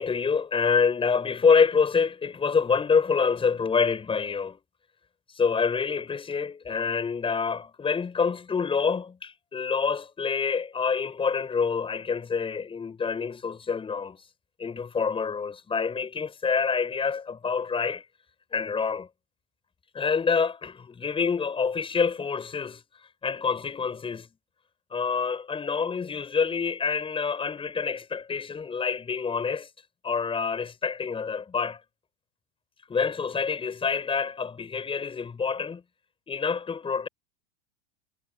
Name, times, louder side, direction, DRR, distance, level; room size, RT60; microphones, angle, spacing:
voice 1, 0.0-4.6 5.3-14.2 14.6-18.0 18.5-19.1 19.9-22.8 23.2-24.3 24.9-29.7 30.0-31.8 32.9-35.8 36.3-37.1, left 5 dB, 15° left, 7.3 m, -27 dB
supercardioid pair, 165°, 40 cm